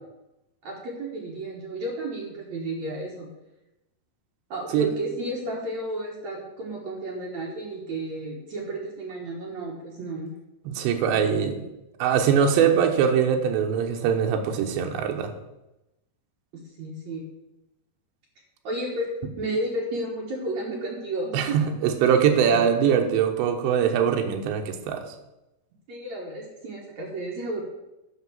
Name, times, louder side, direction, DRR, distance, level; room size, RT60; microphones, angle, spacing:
voice 1, 0.6-3.3 4.5-10.3 16.5-17.3 18.6-19.1 19.4-21.7 22.5-22.6 25.9-27.6, right 1 dB, 65° right, -2 dB, 1.8 m, -32 dB
voice 2, 10.7-11.6 12.0-15.3 21.3-25.0, right 7 dB, 80° right, 4 dB, 3.2 m, -22 dB
10.0 x 5.3 x 7.2 m, 0.96 s
omnidirectional pair, 5.1 m